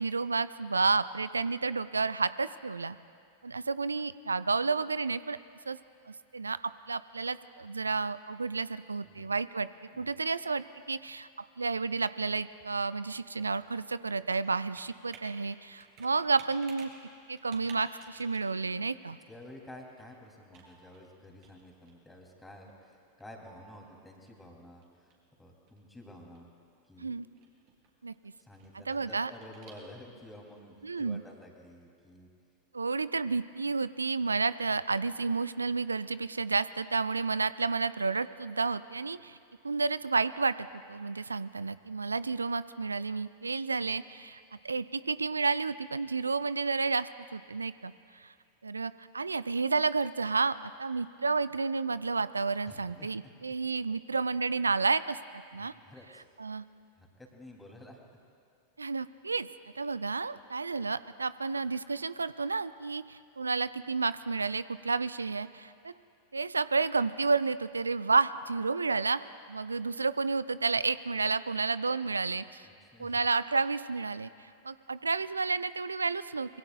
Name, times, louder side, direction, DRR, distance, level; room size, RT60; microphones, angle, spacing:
voice 1, 0.0-3.0 3.4-5.4 5.7-5.8 6.1-9.7 10.0-16.9 17.3-19.2 27.0-27.3 28.0-28.1 28.9-29.3 30.8-31.2 32.7-39.4 39.6-44.4 44.6-47.9 48.2-48.3 48.6-55.7 56.4-56.6 58.8-59.5 59.8-65.9 66.3-69.2 69.5-72.6 73.0-74.3 74.6-76.6, right 4 dB, 75° right, 16 dB, 0.3 m, -31 dB
Computer keyboard, 12.1-30.3, right 4 dB, 40° right, 3.1 m, -58 dB
voice 2, 19.3-25.1 25.4-26.5 26.9-27.1 28.4-32.3 52.6-53.1 55.5-56.3 57.0-58.2 72.6-73.2, left 1 dB, 5° left, 0 dB, 2.8 m, -51 dB
25.0 x 22.5 x 2.3 m, 2.4 s
figure-of-eight pair, 90°, 0 cm